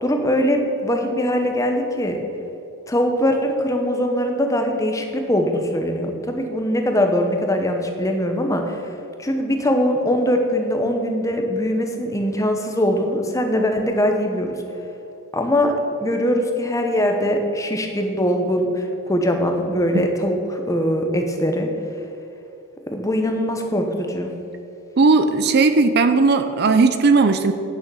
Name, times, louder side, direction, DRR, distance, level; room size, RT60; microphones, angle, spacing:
voice 1, 0.0-2.2 2.9-14.6 15.3-15.7 16.0-21.7 22.9-24.3, equal, 15° left, 4 dB, 0.8 m, -21 dB
voice 2, 25.0-27.5, right 4 dB, 45° right, 9 dB, 0.5 m, -16 dB
9.0 x 6.4 x 6.9 m, 2.8 s
head